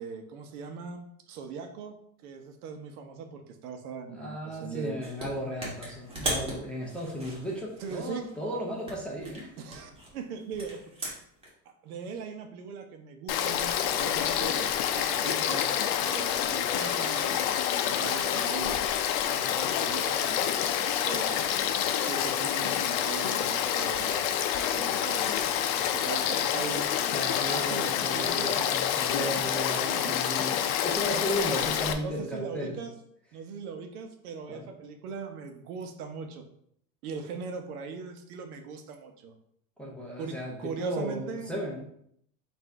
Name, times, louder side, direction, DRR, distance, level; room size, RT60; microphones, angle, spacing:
voice 1, 0.0-2.0 2.2-5.0 7.8-8.2 9.6-10.8 11.6-15.8 16.0-17.4 17.7-18.8 19.2-20.5 20.8-21.4 22.0-24.3 24.5-25.4 25.8-26.9 27.5-28.6 29.2-30.2 31.0-31.3 32.0-32.9 33.3-36.4 37.0-39.3 40.2-41.5, right 5 dB, 90° right, 6 dB, 0.9 m, -40 dB
voice 2, 4.1-9.5 27.1-32.8 34.5-34.7 39.8-41.9, equal, 5° left, -3 dB, 0.4 m, -35 dB
sound 1, 5.0-5.3 5.6-8.4 8.8-11.5, right 1 dB, 15° right, 1.2 m, -37 dB
Frog / Stream, 13.3-31.9, left 10 dB, 70° left, 0.6 m, -28 dB
4.3 x 2.6 x 4.5 m, 0.70 s
supercardioid pair, 150°, 43 cm